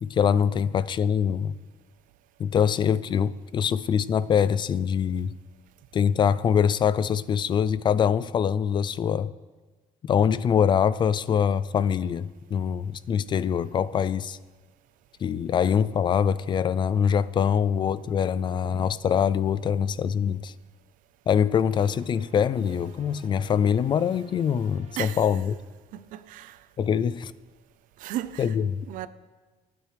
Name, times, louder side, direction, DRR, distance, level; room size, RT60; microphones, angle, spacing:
voice 1, 0.0-1.5 2.4-5.4 5.9-9.3 10.0-14.4 15.2-20.5 21.3-25.5 26.8-27.3 28.4-28.5 28.7-28.9, left 7 dB, 35° left, 0.3 m, -24 dB
sound 1, 21.7-26.1, right 5 dB, 55° right, 1.3 m, -53 dB
voice 2, 25.0-25.4 25.9-26.6 28.0-28.6 28.9-29.1, right 13 dB, 85° right, 0.6 m, -35 dB
25.0 x 9.4 x 3.4 m
cardioid pair, 150°, 14 cm